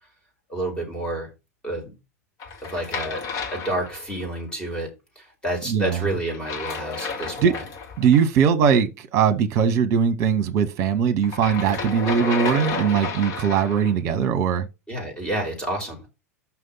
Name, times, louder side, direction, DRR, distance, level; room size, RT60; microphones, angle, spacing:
voice 1, 0.5-1.3 1.6-1.9 2.6-3.2 3.5-7.6 14.9-16.1, right 1 dB, 10° left, 4.7 m, -29 dB
sound 1, 2.4-4.4 6.3-8.2 11.2-13.9, left 5 dB, 40° left, 1.7 m, -31 dB
voice 2, 5.6-6.1 7.4-7.5 8.0-14.7, right 7 dB, 40° right, 1.3 m, -20 dB
6.1 x 5.7 x 5.6 m
figure-of-eight pair, 85°, 8 cm